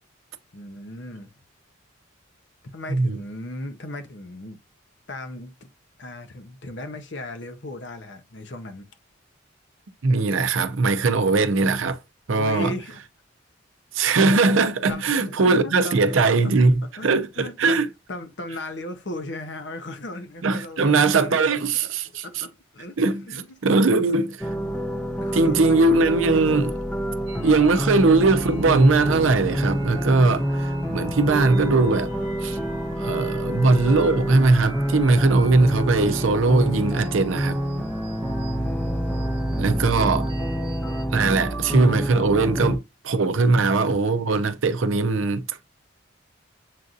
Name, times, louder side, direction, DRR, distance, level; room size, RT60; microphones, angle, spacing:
voice 1, 0.5-1.3 2.7-4.6 5.1-5.5 6.0-8.9 12.3-13.0 14.9-16.2 16.8-17.8 18.1-21.5 22.0-23.6 25.2-26.5 38.2-39.0, left 1 dB, 60° left, 0.7 m, -37 dB
voice 2, 10.0-12.0 12.3-12.7 13.9-17.9 20.4-22.2 23.0-23.2 23.6-24.5 25.3-26.7 27.4-32.1 32.4-32.6 33.0-37.6 39.6-40.3 41.1-45.6, right 3 dB, 75° right, 0.6 m, -20 dB
sound 1, 24.4-42.8, equal, 5° left, 0.5 m, -27 dB
sound 2, 27.3-41.0, right 3 dB, 25° right, 1.1 m, -43 dB
7.4 x 2.6 x 2.4 m
head